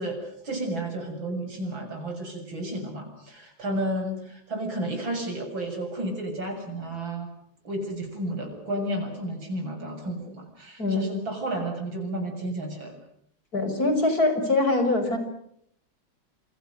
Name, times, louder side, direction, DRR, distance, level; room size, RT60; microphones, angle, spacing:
voice 1, 0.0-7.3 7.6-13.0, right 1 dB, 80° right, 4 dB, 7.7 m, -32 dB
voice 2, 13.5-15.2, left 2 dB, 50° left, 8 dB, 6.0 m, -23 dB
28.5 x 27.5 x 6.6 m, 0.70 s
omnidirectional pair, 2.1 m